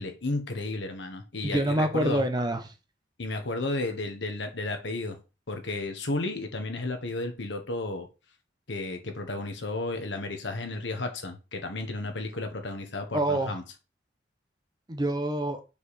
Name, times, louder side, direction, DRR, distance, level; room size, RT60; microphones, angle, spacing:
voice 1, 0.0-2.2 3.2-5.2 5.5-8.1 8.7-13.6, left 2 dB, 85° left, 1.3 m, -33 dB
voice 2, 1.4-2.7 13.1-13.6 14.9-15.6, right 1 dB, 25° right, 0.8 m, -26 dB
5.3 x 5.0 x 4.2 m
head